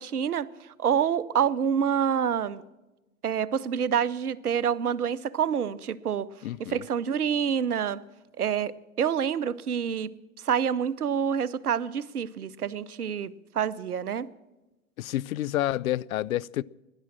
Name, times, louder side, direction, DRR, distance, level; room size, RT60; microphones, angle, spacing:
voice 1, 0.0-2.6 3.2-6.3 6.6-8.0 8.4-10.1 10.4-14.3, right 8 dB, 85° right, 0.7 m, -27 dB
voice 2, 6.4-6.8 15.0-16.6, left 14 dB, 70° left, 0.5 m, -29 dB
17.0 x 10.5 x 7.4 m
figure-of-eight pair, 90°, 44 cm